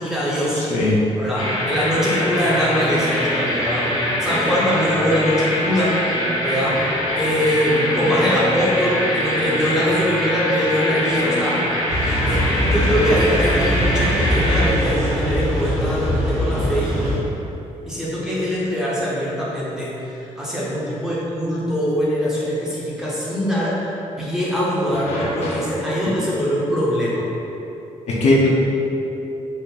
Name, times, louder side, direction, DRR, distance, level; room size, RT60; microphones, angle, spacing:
voice 1, 0.0-0.6 1.1-3.9 4.2-6.0 6.4-11.7 12.3-17.0 17.9-23.9 24.2-27.2, equal, 5° right, -8 dB, 0.7 m, -22 dB
voice 2, 0.6-1.0 24.9-25.6 28.1-28.5, left 2 dB, 60° left, -4 dB, 0.7 m, -20 dB
sound 1, 1.4-14.7, left 1 dB, 80° left, 1.0 m, -23 dB
sound 2, 11.9-17.2, equal, 90° right, 1.1 m, -22 dB
4.3 x 2.1 x 3.7 m, 3.0 s
cardioid pair, 135°, 12 cm